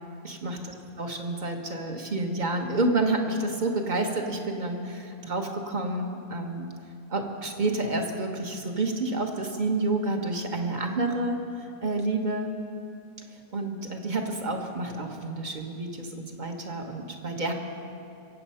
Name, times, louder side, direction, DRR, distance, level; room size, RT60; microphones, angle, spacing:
voice 1, 0.2-0.6 1.0-6.7 7.1-12.5 13.5-17.5, right 2 dB, 35° right, 3 dB, 1.3 m, -29 dB
22.5 x 8.4 x 5.7 m, 2.5 s
omnidirectional pair, 1.6 m